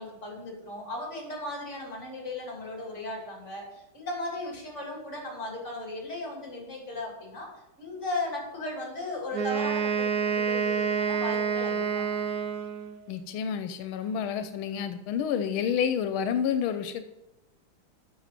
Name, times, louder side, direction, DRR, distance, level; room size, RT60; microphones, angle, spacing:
voice 1, 0.0-7.5 7.8-12.1, left 2 dB, 35° left, -1 dB, 3.2 m, -36 dB
Wind instrument woodwind instrument, 9.3-13.0, right 7 dB, 60° right, 1.1 m, -28 dB
voice 2, 13.1-17.0, left 8 dB, 90° left, 9 dB, 1.5 m, -29 dB
8.2 x 6.4 x 5.9 m, 0.94 s
omnidirectional pair, 2.2 m